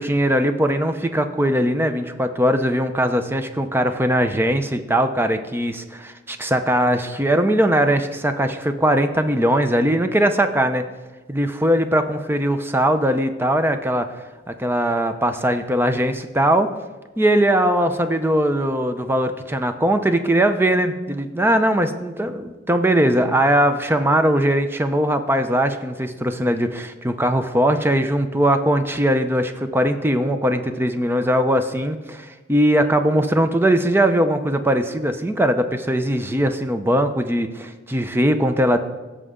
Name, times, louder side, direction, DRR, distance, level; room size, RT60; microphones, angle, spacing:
voice 1, 0.0-10.9 11.3-14.1 14.5-16.7 17.2-38.8, right 1 dB, 10° right, 8 dB, 0.6 m, -20 dB
16.5 x 6.8 x 3.7 m, 1.2 s
head